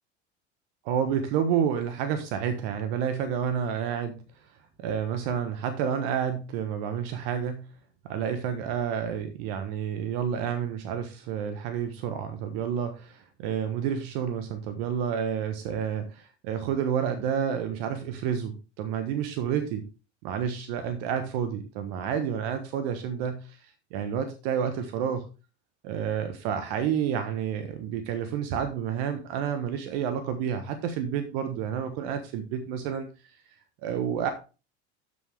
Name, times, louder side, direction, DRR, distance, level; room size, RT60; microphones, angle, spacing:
voice 1, 0.8-4.2 4.8-7.7 8.0-19.8 20.2-25.3 25.8-33.1 33.8-34.3, right 8 dB, 65° right, 8 dB, 1.4 m, -30 dB
12.0 x 6.5 x 3.6 m, 0.32 s
hypercardioid pair, 80°, 34 cm